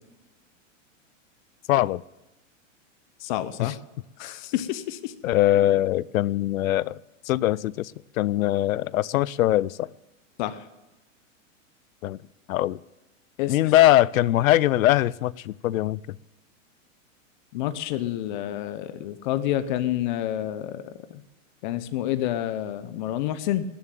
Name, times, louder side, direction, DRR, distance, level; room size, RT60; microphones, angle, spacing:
voice 1, 1.7-2.0 3.6-3.8 5.2-7.0 7.3-7.9 8.2-9.9 12.0-12.2 12.5-12.8 13.5-16.0, left 14 dB, 90° left, 23 dB, 0.6 m, -22 dB
voice 2, 3.2-3.7 4.2-5.1 10.4-10.6 13.4-13.5 17.5-20.8 21.6-23.6, left 13 dB, 35° left, 13 dB, 0.8 m, -28 dB
19.5 x 7.4 x 9.1 m, 1.0 s
supercardioid pair, 165°, 40 cm